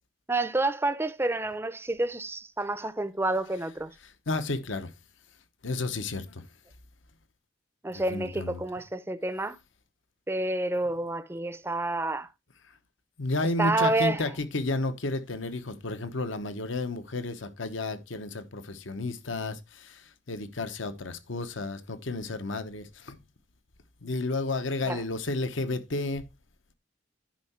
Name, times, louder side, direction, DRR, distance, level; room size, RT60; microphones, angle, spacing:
voice 1, 0.3-3.9 7.8-9.6 10.3-12.3 13.6-14.2 24.9-25.0, right 2 dB, 10° right, 0.5 m, -29 dB
voice 2, 4.3-4.9 5.6-6.4 7.9-8.6 13.2-23.2 24.0-26.2, left 2 dB, 80° left, 1.0 m, -32 dB
10.5 x 5.5 x 4.3 m
head